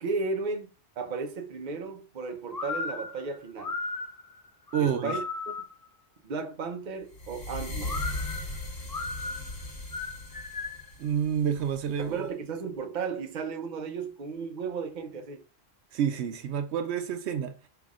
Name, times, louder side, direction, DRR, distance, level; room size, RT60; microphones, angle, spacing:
voice 1, 0.0-3.7 4.8-5.2 6.2-8.0 12.0-15.4, right 4 dB, 50° right, 0.8 m, -34 dB
sound 1, 2.5-5.8 7.8-10.9, left 3 dB, 30° left, 0.4 m, -36 dB
voice 2, 4.7-5.2 11.0-12.3 15.9-17.7, right 8 dB, 80° right, 0.8 m, -29 dB
sound 2, 7.1-12.2, left 1 dB, 65° left, 1.4 m, -38 dB
5.1 x 3.4 x 2.4 m
omnidirectional pair, 1.1 m